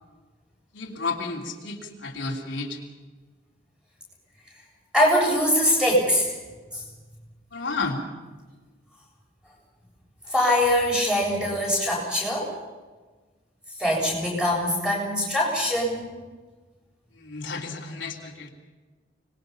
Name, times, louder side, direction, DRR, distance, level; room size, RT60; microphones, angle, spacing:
voice 1, 0.7-2.8 7.5-8.0 17.1-18.5, left 3 dB, 85° left, -1 dB, 3.2 m, -32 dB
voice 2, 4.9-6.4 6.7-6.8 10.3-12.5 13.8-16.1 17.4-17.5, equal, 5° right, -3 dB, 7.7 m, -23 dB
25.5 x 21.0 x 5.8 m, 1.3 s
head